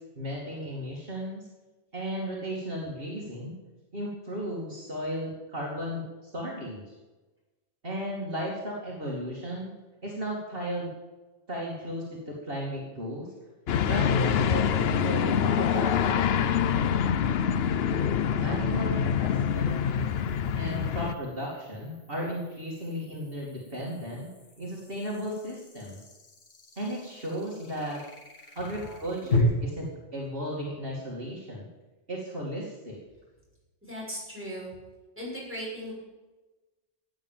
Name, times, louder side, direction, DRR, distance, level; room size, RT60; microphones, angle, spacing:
voice 1, 0.0-1.5 1.9-3.6 3.9-6.8 7.8-9.7 10.0-10.9 11.5-13.3 13.9-16.5 18.4-20.1 20.5-24.3 24.6-26.0 26.8-28.0 28.6-31.7 32.1-33.0, equal, 50° right, -3 dB, 2.8 m, -35 dB
sound 1, 13.7-21.1, left 8 dB, 65° left, 0.9 m, -25 dB
sound 2, 15.8-15.9 19.3-29.4, left 5 dB, 90° left, 2.2 m, -39 dB
voice 2, 33.8-34.7 35.2-35.9, equal, 10° right, -5 dB, 6.4 m, -37 dB
16.0 x 9.2 x 7.4 m, 1.2 s
omnidirectional pair, 1.2 m